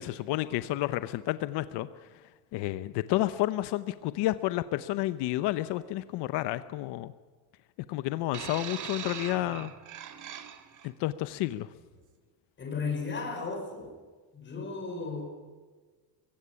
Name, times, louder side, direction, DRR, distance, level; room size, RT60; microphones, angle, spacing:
voice 1, 0.0-1.9 2.5-7.1 7.9-9.7 10.8-11.7, left 16 dB, 85° left, 13 dB, 0.9 m, -30 dB
sound 1, 8.3-10.9 11.8-12.0, right 9 dB, 50° right, 1.9 m, -41 dB
voice 2, 12.6-13.9 14.3-15.3, left 4 dB, 30° left, 3 dB, 5.7 m, -34 dB
22.5 x 16.5 x 9.8 m, 1.4 s
cardioid pair, 155°, 40 cm